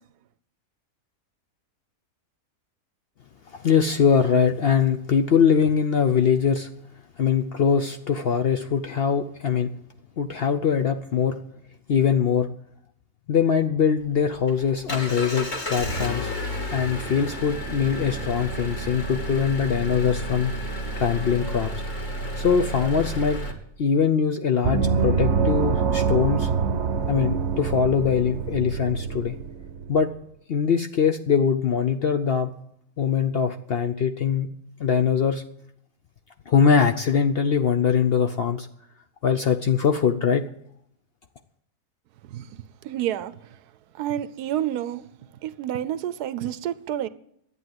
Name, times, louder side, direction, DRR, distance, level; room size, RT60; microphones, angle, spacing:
voice 1, 3.5-6.7 7.2-9.7 10.2-11.4 11.9-12.5 13.3-16.3 16.7-20.5 21.0-21.7 22.4-23.4 23.8-26.5 27.1-29.4 29.9-30.1 30.5-32.5 33.0-34.5 34.8-35.4 36.5-38.7 39.2-40.4, left 7 dB, 60° left, 0.6 m, -22 dB
Engine, 14.0-23.5, equal, 30° left, 1.7 m, -31 dB
Gong, 24.6-29.9, right 5 dB, 55° right, 0.9 m, -25 dB
voice 2, 42.8-43.6 43.9-45.0 45.4-47.1, right 11 dB, 85° right, 1.2 m, -29 dB
11.0 x 8.8 x 7.8 m
omnidirectional pair, 1.6 m